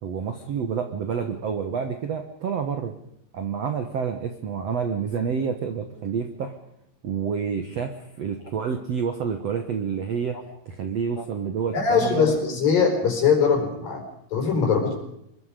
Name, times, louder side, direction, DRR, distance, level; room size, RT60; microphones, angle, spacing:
voice 1, 0.0-2.9 3.3-6.5 7.0-10.4 10.6-12.3, right 6 dB, 80° right, 6 dB, 1.4 m, -28 dB
voice 2, 11.7-14.0 14.3-14.9, left 6 dB, 50° left, 3 dB, 6.5 m, -21 dB
25.5 x 23.0 x 5.2 m, 0.79 s
omnidirectional pair, 5.3 m